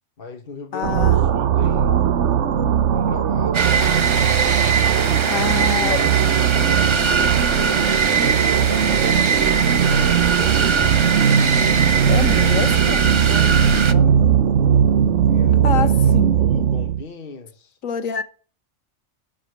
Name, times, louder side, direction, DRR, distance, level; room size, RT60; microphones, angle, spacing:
voice 1, 0.2-2.0 2.9-4.1 4.7-7.8 8.5-11.0 11.9-14.2 15.2-17.8, left 4 dB, 45° left, 6 dB, 1.4 m, -38 dB
voice 2, 0.7-1.2 5.3-6.0 12.1-13.0 15.6-16.3 17.8-18.2, left 7 dB, 80° left, 12 dB, 1.5 m, -26 dB
sound 1, 0.8-17.0, right 8 dB, 65° right, 1.1 m, -18 dB
sound 2, 3.5-13.9, right 5 dB, 40° right, 0.4 m, -22 dB
12.5 x 5.0 x 7.1 m, 0.37 s
omnidirectional pair, 1.4 m